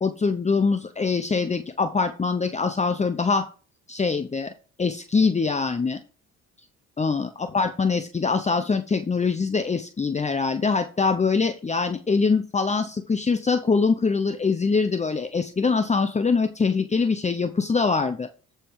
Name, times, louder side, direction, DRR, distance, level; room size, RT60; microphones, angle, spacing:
voice 1, 0.0-3.5 3.9-4.5 4.8-6.0 7.0-18.3, left 4 dB, 25° left, 9 dB, 0.8 m, -23 dB
14.0 x 5.8 x 4.8 m, 0.38 s
cardioid pair, 90°, 30 cm